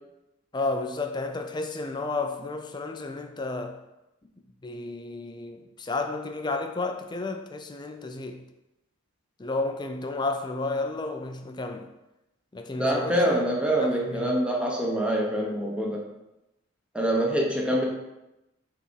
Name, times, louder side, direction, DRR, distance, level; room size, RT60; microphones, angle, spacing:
voice 1, 0.5-3.8 4.6-8.4 9.4-11.9 12.5-13.4 13.8-14.4, left 3 dB, 20° left, 0.4 m, -32 dB
voice 2, 12.8-16.0 16.9-17.9, right 1 dB, 5° right, 0.9 m, -25 dB
6.8 x 3.5 x 4.6 m
head